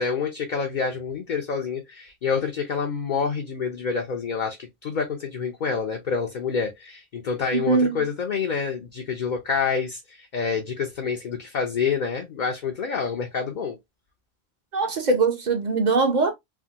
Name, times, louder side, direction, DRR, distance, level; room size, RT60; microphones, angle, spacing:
voice 1, 0.0-13.8, left 5 dB, 55° left, 0.7 m, -27 dB
voice 2, 7.5-8.0 14.7-16.3, right 4 dB, 45° right, 0.8 m, -22 dB
3.5 x 2.1 x 2.7 m
omnidirectional pair, 1.1 m